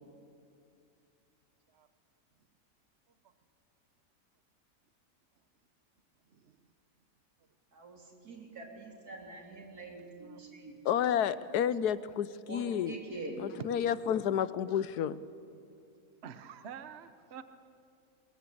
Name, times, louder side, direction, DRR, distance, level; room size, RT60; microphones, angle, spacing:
voice 1, 7.7-11.4 12.5-13.5, right 2 dB, 75° right, 1 dB, 4.1 m, -45 dB
voice 2, 10.8-12.9 13.4-15.2, left 9 dB, 85° left, 16 dB, 1.3 m, -30 dB
voice 3, 13.8-14.4 16.2-17.4, right 7 dB, 50° right, 10 dB, 1.1 m, -49 dB
22.0 x 21.5 x 8.5 m, 2.4 s
omnidirectional pair, 1.6 m